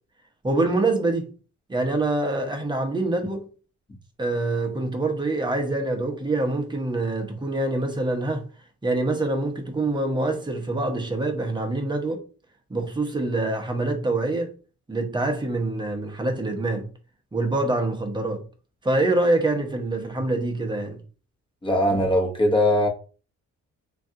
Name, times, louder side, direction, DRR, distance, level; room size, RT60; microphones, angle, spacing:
voice 1, 0.4-1.3 1.7-3.5 4.2-8.5 8.8-12.2 12.7-14.5 14.9-16.9 17.3-18.4 18.8-21.0, right 2 dB, 15° right, 0.8 m, -25 dB
voice 2, 21.6-22.9, left 1 dB, 15° left, 0.9 m, -20 dB
3.2 x 2.4 x 2.7 m
cardioid pair, 90°, 30 cm